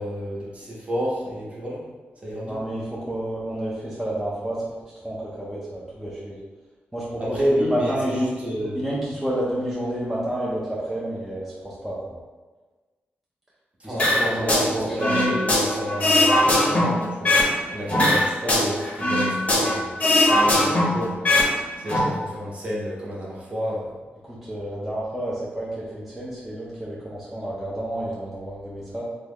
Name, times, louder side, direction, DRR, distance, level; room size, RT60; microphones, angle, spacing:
voice 1, 0.0-1.8 2.2-2.6 7.2-8.8 13.8-17.4 17.7-20.0 20.3-21.4 21.8-23.9, equal, 30° right, -6 dB, 0.9 m, -29 dB
voice 2, 2.5-4.7 4.9-6.4 6.9-8.3 8.7-12.2 13.8-15.4 24.2-29.0, right 1 dB, 5° right, -8 dB, 0.5 m, -30 dB
sound 1, 14.0-14.7 15.0-17.5 17.9-19.7 20.0-21.5 21.8-22.0, left 1 dB, 35° left, 0.7 m, -19 dB
3.0 x 2.3 x 3.5 m, 1.3 s
wide cardioid pair, 125°, 4 cm